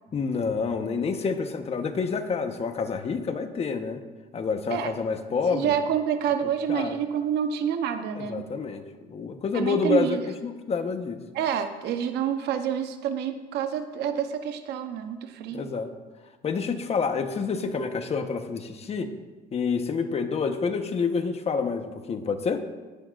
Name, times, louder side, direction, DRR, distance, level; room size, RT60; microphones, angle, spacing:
voice 1, 0.1-4.0 4.3-5.7 6.7-7.0 8.2-11.2 15.5-15.9 16.4-19.1 19.5-22.6, left 5 dB, 40° left, 7 dB, 1.1 m, -28 dB
voice 2, 5.5-8.5 9.5-10.2 11.3-15.7, right 8 dB, 80° right, 8 dB, 0.9 m, -28 dB
19.0 x 10.5 x 2.5 m, 1.3 s
cardioid pair, 110°, 17 cm